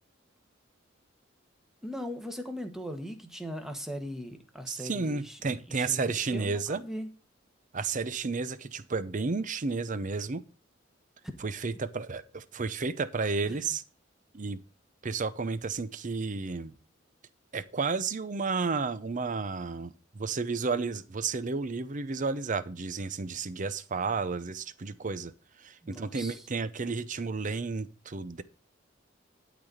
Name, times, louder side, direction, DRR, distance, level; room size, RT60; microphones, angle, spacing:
voice 1, 1.8-5.4 5.7-7.1 11.2-11.3 13.4-13.7 25.8-26.4, equal, ahead, 6 dB, 1.4 m, -39 dB
voice 2, 4.7-6.8 7.7-10.4 11.4-13.8 14.3-14.6 15.0-16.7 17.5-25.3 25.6-28.4, right 4 dB, 40° right, 14 dB, 0.6 m, -32 dB
12.0 x 4.1 x 7.8 m, 0.36 s
head